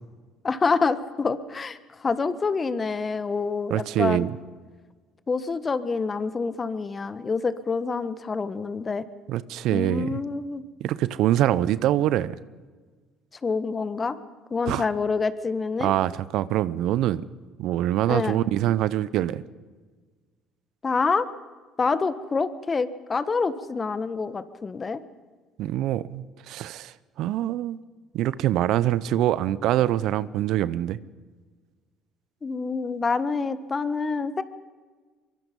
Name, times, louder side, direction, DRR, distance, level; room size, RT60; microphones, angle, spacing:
voice 1, 0.4-4.3 5.3-9.0 9.7-10.6 13.4-14.2 14.5-15.9 18.1-18.4 20.8-21.3 21.8-25.0 32.4-34.4, left 4 dB, 30° left, 13 dB, 1.5 m, -27 dB
voice 2, 3.7-4.4 9.3-10.2 10.8-12.4 14.7-14.9 15.8-17.3 17.6-19.4 25.6-27.8 28.1-31.0, right 13 dB, 65° right, 17 dB, 0.7 m, -24 dB
23.5 x 23.5 x 5.4 m, 1.4 s
hypercardioid pair, 65°, 0 cm